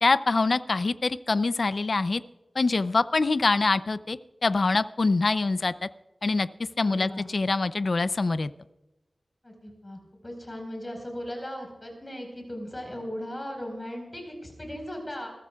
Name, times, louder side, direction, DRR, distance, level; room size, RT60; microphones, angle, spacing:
voice 1, 0.0-2.2 2.6-5.9 6.2-6.5 6.8-8.5, left 3 dB, 55° left, 14 dB, 0.5 m, -24 dB
voice 2, 6.8-7.3 9.4-15.3, equal, 25° left, 2 dB, 4.6 m, -37 dB
21.0 x 14.5 x 2.4 m, 1.0 s
wide cardioid pair, 95°, 0 cm